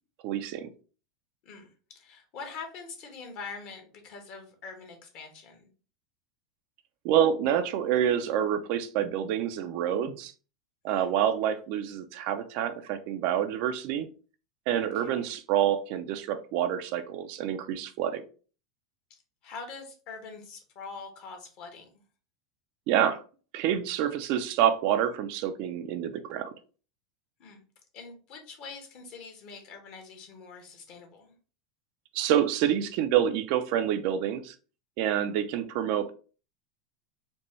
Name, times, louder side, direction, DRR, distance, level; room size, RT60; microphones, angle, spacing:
voice 1, 0.2-0.7 7.0-10.3 10.8-14.1 14.7-18.2 22.9-23.2 23.5-26.5 32.1-34.5 35.0-36.1, right 10 dB, 60° right, 0.5 m, -27 dB
voice 2, 1.4-5.7 10.9-11.1 14.9-15.3 19.4-21.9 27.4-27.6 27.9-31.3, left 4 dB, 55° left, 1.3 m, -44 dB
4.2 x 2.2 x 3.1 m
hypercardioid pair, 105°, 3 cm